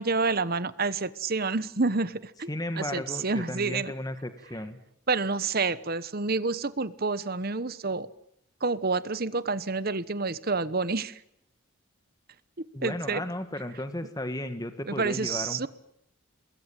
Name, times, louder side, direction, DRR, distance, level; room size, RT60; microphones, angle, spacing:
voice 1, 0.0-2.5 2.8-3.9 5.1-8.1 8.6-11.2 12.8-13.2 14.9-15.7, right 4 dB, 45° right, 16 dB, 1.1 m, -28 dB
voice 2, 2.5-4.8 12.7-15.7, left 1 dB, 15° left, 9 dB, 1.7 m, -34 dB
26.5 x 21.5 x 9.0 m, 0.75 s
head